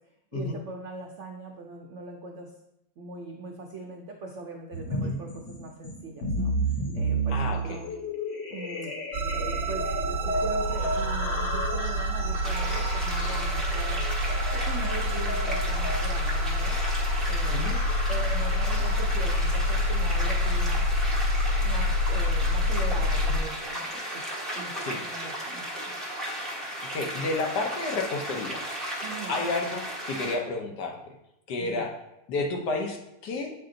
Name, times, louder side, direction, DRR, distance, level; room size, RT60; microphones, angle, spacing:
voice 1, 0.3-2.5 3.0-6.5 6.9-7.9 8.5-8.9 9.3-14.0 14.5-16.8 17.3-17.7 18.1-20.8 21.6-25.9 29.0-29.4 31.6-31.9, right 3 dB, 85° right, 1 dB, 0.6 m, -40 dB
sound 1, 4.7-19.4, right 1 dB, 85° left, 1.7 m, -33 dB
voice 2, 7.3-7.8 17.5-17.8 23.3-23.4 24.8-25.0 26.9-28.6 29.3-31.0 31.5-31.9 32.3-33.5, left 3 dB, 65° left, 2 dB, 1.3 m, -31 dB
sound 2, 9.1-23.4, left 1 dB, 65° right, 1.1 m, -27 dB
sound 3, 12.4-30.4, equal, ahead, 0.7 m, -35 dB
8.2 x 3.4 x 3.8 m, 0.83 s
omnidirectional pair, 2.0 m